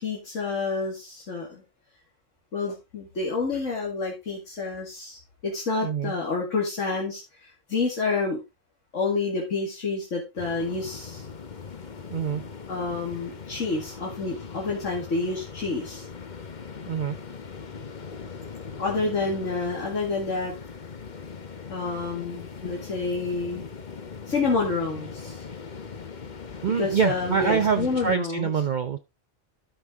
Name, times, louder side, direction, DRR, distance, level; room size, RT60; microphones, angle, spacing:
voice 1, 0.0-1.6 2.5-8.4 8.9-11.3 12.7-16.1 18.8-20.5 21.7-23.7 24.3-25.4 26.8-28.7, left 4 dB, 80° left, -2 dB, 2.4 m, -29 dB
voice 2, 5.8-6.1 12.1-12.5 16.9-17.2 26.6-29.0, right 7 dB, 45° right, 8 dB, 0.7 m, -25 dB
sound 1, 10.4-28.2, left 5 dB, 40° left, 1.0 m, -40 dB
12.5 x 5.4 x 3.5 m, 0.24 s
omnidirectional pair, 1.3 m